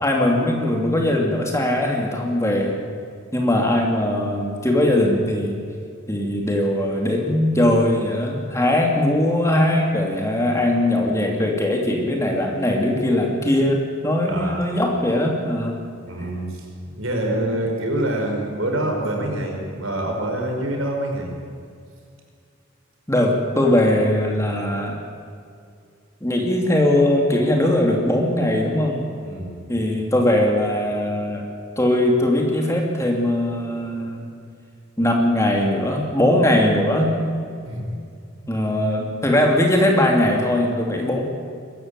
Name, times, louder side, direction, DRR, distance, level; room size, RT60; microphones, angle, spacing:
voice 1, 0.0-2.7 3.3-5.6 6.1-15.8 17.3-17.6 23.1-25.0 26.2-29.0 29.7-31.4 31.8-34.3 35.0-37.1 38.5-41.2, left 1 dB, 15° left, 0 dB, 2.8 m, -20 dB
voice 2, 14.3-14.6 16.1-21.3 29.2-29.5 37.7-37.8, right 1 dB, 80° right, 1 dB, 5.2 m, -26 dB
22.0 x 14.5 x 9.2 m, 2.3 s
head